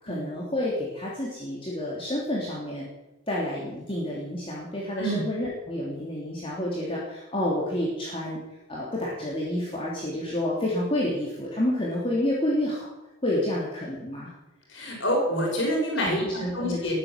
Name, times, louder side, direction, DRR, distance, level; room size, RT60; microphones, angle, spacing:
voice 1, 0.0-2.8 3.3-8.4 8.7-12.9 13.2-14.3 16.0-16.9, left 1 dB, 25° left, -5 dB, 3.3 m, -29 dB
voice 2, 14.7-16.9, equal, 65° left, -1 dB, 6.2 m, -27 dB
20.5 x 8.8 x 7.5 m, 1.0 s
head